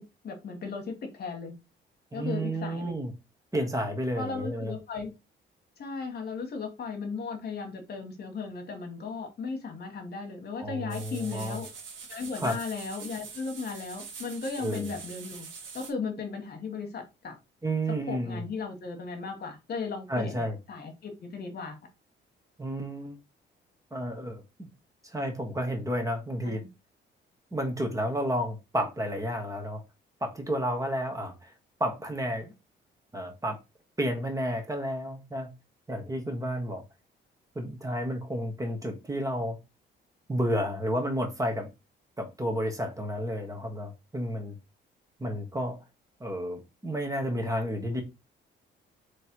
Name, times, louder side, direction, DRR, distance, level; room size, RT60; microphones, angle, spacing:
voice 1, 0.2-1.5 2.1-3.0 4.1-5.1 5.8-11.7 12.1-15.5 15.7-17.3 18.1-21.8 26.4-26.7, left 4 dB, 55° left, 1.3 m, -36 dB
voice 2, 2.1-3.1 3.5-4.7 10.6-11.6 12.4-12.6 14.6-14.9 17.6-18.4 20.1-20.6 22.6-23.2 23.9-24.7 25.0-26.6 27.5-29.8 30.2-31.5 31.8-32.5 33.1-33.6 34.0-35.5 35.9-36.8 37.5-39.6 40.3-41.7 42.2-44.6 45.2-45.8 46.2-48.0, equal, 15° right, 1.3 m, -31 dB
sound 1, 10.9-15.9, right 5 dB, 80° right, 1.5 m, -44 dB
3.3 x 3.2 x 4.4 m
cardioid pair, 90°, 20 cm